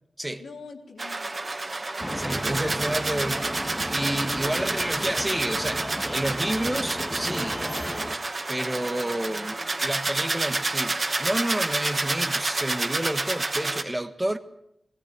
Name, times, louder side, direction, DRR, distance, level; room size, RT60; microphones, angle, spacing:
voice 1, 0.4-1.4 1.8-2.6 3.9-4.7 8.7-9.8, left 4 dB, 80° left, 3.8 m, -44 dB
sound 1, 1.0-13.8, right 2 dB, 40° right, 2.4 m, -29 dB
sound 2, 2.0-8.2, equal, 5° left, 2.2 m, -34 dB
voice 2, 2.1-3.5 3.9-5.9 6.1-7.7 8.5-14.4, right 1 dB, 15° right, 1.6 m, -30 dB
20.0 x 17.0 x 9.6 m
cardioid pair, 65°, 0 cm